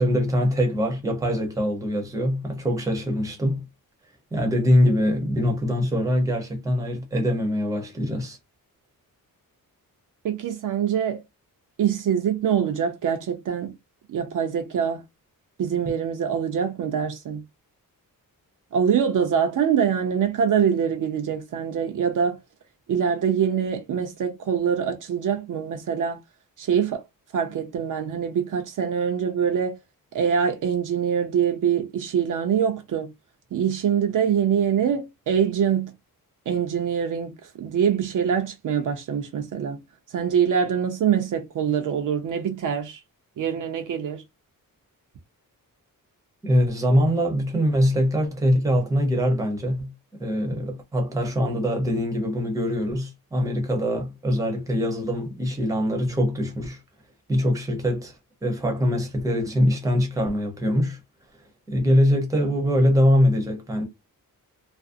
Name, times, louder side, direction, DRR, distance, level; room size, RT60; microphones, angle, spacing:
voice 1, 0.0-3.6 4.3-8.4 46.4-49.9 50.2-56.8 57.3-58.1 58.4-61.0 61.7-63.9, equal, 10° right, 0.7 m, -23 dB
voice 2, 10.2-11.2 11.8-13.7 14.1-15.0 15.6-17.4 18.7-22.4 22.9-26.2 26.6-27.0 27.3-29.8 30.1-33.1 33.5-35.9 36.5-39.8 40.1-43.0 43.4-44.2, right 8 dB, 60° right, 0.6 m, -24 dB
2.4 x 2.0 x 2.5 m
wide cardioid pair, 155°, 36 cm